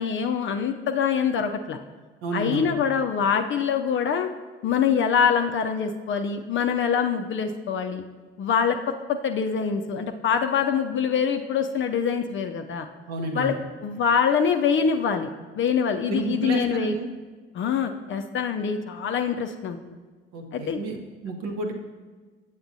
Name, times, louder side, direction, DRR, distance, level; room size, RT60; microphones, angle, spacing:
voice 1, 0.0-1.8 2.3-4.3 4.6-8.0 8.4-8.8 9.1-12.9 13.3-13.5 13.8-17.0 17.5-19.8 20.5-20.8, left 7 dB, 40° left, 6 dB, 0.5 m, -24 dB
voice 2, 2.2-2.7 13.1-13.6 16.1-17.1 20.3-21.7, right 3 dB, 60° right, 3 dB, 1.0 m, -30 dB
7.8 x 7.1 x 2.7 m, 1.4 s
figure-of-eight pair, 50°, 30 cm